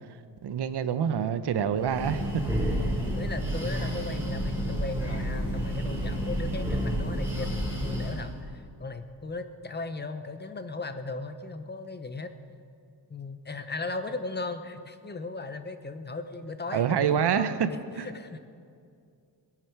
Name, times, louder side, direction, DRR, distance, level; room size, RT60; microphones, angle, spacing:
voice 1, 0.4-2.4 3.8-3.9 16.7-17.7 18.0-18.1, right 8 dB, 65° right, 12 dB, 0.9 m, -26 dB
Breathing, 1.7-8.4, equal, 5° right, 3.7 m, -30 dB
voice 2, 3.0-12.3 13.1-17.7 18.0-18.4, left 3 dB, 25° left, 9 dB, 0.8 m, -37 dB
21.0 x 11.0 x 4.6 m, 2.4 s
wide cardioid pair, 140°, 43 cm